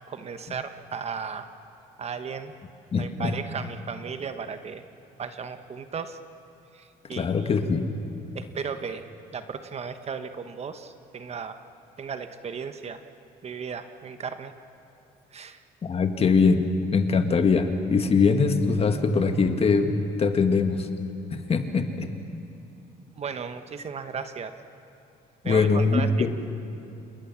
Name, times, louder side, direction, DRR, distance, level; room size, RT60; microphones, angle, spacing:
voice 1, 0.1-1.5 2.0-2.5 3.0-4.8 5.2-6.2 6.7-7.5 8.3-11.6 12.0-13.0 13.4-14.5 15.3-15.6 23.2-24.5 25.4-26.3, right 6 dB, 40° right, 9 dB, 1.2 m, -35 dB
voice 2, 2.9-3.3 7.1-7.9 15.8-16.7 16.9-20.9 21.3-22.1 25.4-26.3, left 4 dB, 35° left, 7 dB, 1.8 m, -22 dB
28.0 x 20.5 x 7.3 m, 2.9 s
cardioid pair, 110°, 17 cm